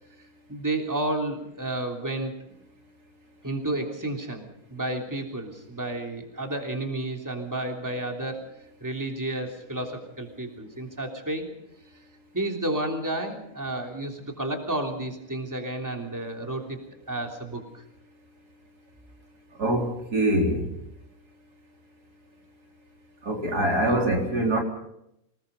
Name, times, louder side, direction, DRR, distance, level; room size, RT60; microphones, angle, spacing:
voice 1, 0.5-2.3 3.4-8.5 8.8-11.5 12.3-16.8 17.1-17.8 23.9-24.0, right 1 dB, 10° right, 3 dB, 3.2 m, -31 dB
voice 2, 19.6-20.7 23.2-24.6, right 1 dB, 90° right, 1 dB, 4.5 m, -24 dB
26.0 x 19.0 x 5.4 m, 0.80 s
omnidirectional pair, 1.6 m